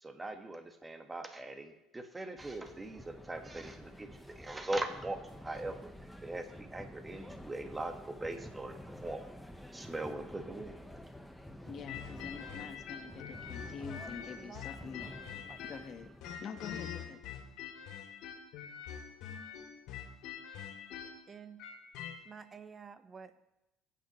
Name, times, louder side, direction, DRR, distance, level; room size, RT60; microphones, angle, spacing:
voice 1, 0.0-4.1 4.4-5.9 6.2-6.5 6.7-9.2 9.7-10.7, right 2 dB, 15° right, 6 dB, 1.4 m, -40 dB
sound 1, 2.4-16.3, equal, ahead, 1.0 m, -50 dB
voice 2, 11.7-15.1 15.6-16.1 16.4-17.2, left 6 dB, 45° left, 7 dB, 1.2 m, -46 dB
sound 2, 11.9-15.9 16.2-22.2, left 8 dB, 75° left, 2.3 m, -44 dB
voice 3, 14.4-14.9 15.5-15.6 21.3-21.6 22.2-23.4, right 6 dB, 30° right, 10 dB, 1.0 m, -51 dB
22.5 x 9.0 x 3.1 m, 0.92 s
supercardioid pair, 100°, 0 cm